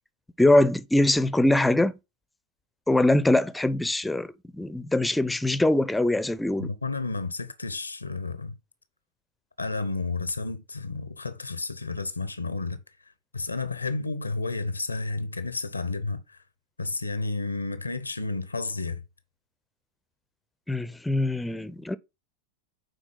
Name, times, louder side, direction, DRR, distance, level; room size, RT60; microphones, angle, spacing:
voice 1, 0.4-2.0 2.9-6.7 20.7-22.0, left 1 dB, 5° left, 0.6 m, -23 dB
voice 2, 6.6-8.6 9.6-12.8 13.3-16.4 16.8-19.0, left 3 dB, 85° left, 0.9 m, -31 dB
9.1 x 3.9 x 3.9 m
figure-of-eight pair, 90°, 0 cm